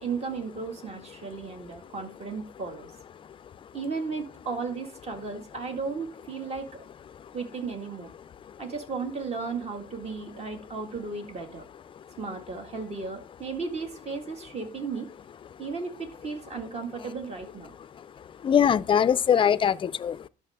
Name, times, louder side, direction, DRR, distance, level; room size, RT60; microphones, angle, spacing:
voice 1, 0.0-2.9 3.7-6.9 7.3-8.1 8.6-11.6 12.2-15.1 15.6-17.7, right 4 dB, 40° right, 1.8 m, -35 dB
voice 2, 18.4-20.3, left 8 dB, 30° left, 0.4 m, -22 dB
11.5 x 6.1 x 3.5 m
cardioid pair, 110°, 17 cm